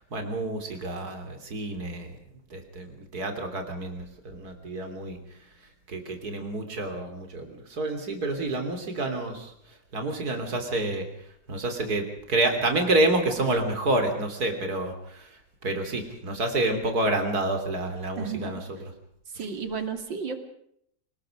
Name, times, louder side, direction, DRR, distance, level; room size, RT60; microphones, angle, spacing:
voice 1, 0.1-2.1 2.5-5.2 5.9-9.5 9.9-11.1 11.5-15.4 15.6-18.9 19.4-19.5, right 2 dB, 55° right, 6 dB, 3.8 m, -28 dB
voice 2, 18.2-18.6 19.3-20.4, right 5 dB, 85° right, 7 dB, 3.3 m, -33 dB
28.0 x 19.5 x 5.0 m, 0.69 s
omnidirectional pair, 2.0 m